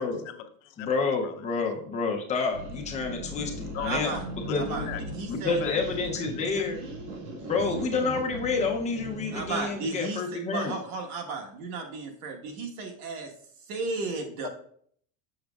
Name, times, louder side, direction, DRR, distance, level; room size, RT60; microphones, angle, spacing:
voice 1, 0.2-0.9 1.2-1.4 3.4-4.2 4.5-5.0 5.3-5.8 6.1-6.6 14.4-14.5, left 10 dB, 65° left, 8 dB, 0.7 m, -40 dB
voice 2, 0.8-4.1 4.5-4.9 5.3-6.8 7.4-10.7, left 4 dB, 15° left, 1 dB, 0.6 m, -29 dB
sound 1, 2.5-9.7, equal, 65° right, 2.0 m, -38 dB
voice 3, 3.7-4.2 4.5-4.9 5.1-5.6 9.3-10.2 10.5-13.3 13.7-14.5, right 3 dB, 90° right, 2 dB, 1.4 m, -34 dB
7.0 x 6.4 x 2.3 m, 0.62 s
cardioid pair, 165°, 42 cm